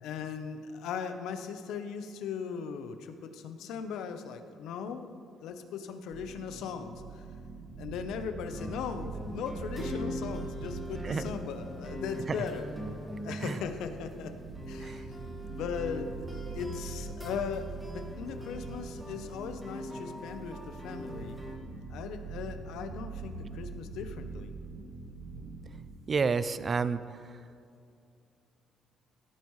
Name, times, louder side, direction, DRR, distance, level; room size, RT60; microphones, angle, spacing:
voice 1, 0.0-7.2 7.8-12.7 13.2-14.3 14.7-15.2 15.5-16.1 16.5-21.4 21.9-24.5, left 7 dB, 80° left, 8 dB, 0.8 m, -38 dB
sound 1, 6.1-25.9, right 4 dB, 75° right, 2.2 m, -43 dB
sound 2, 8.4-21.5, equal, 10° right, 1.8 m, -42 dB
voice 2, 26.1-27.0, right 5 dB, 30° right, 14 dB, 0.4 m, -29 dB
16.5 x 9.0 x 3.2 m, 2.5 s
cardioid pair, 140°, 0 cm